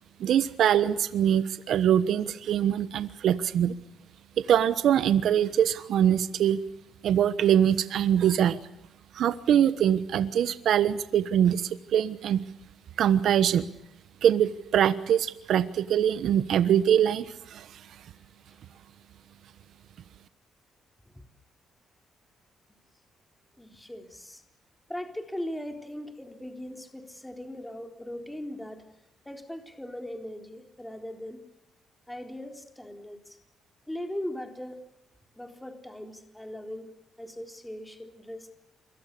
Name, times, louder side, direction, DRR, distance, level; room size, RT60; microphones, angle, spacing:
voice 1, 0.2-3.8 4.4-6.6 7.0-8.6 9.1-12.4 13.0-13.7 14.2-18.0, right 9 dB, 70° right, 13 dB, 1.1 m, -23 dB
voice 2, 23.6-24.4 24.9-28.9 29.3-31.4 32.1-33.4 33.9-34.8 35.4-36.9 37.2-38.5, left 1 dB, 5° left, 4 dB, 3.9 m, -39 dB
28.0 x 23.5 x 6.8 m, 0.88 s
cardioid pair, 90°, 0 cm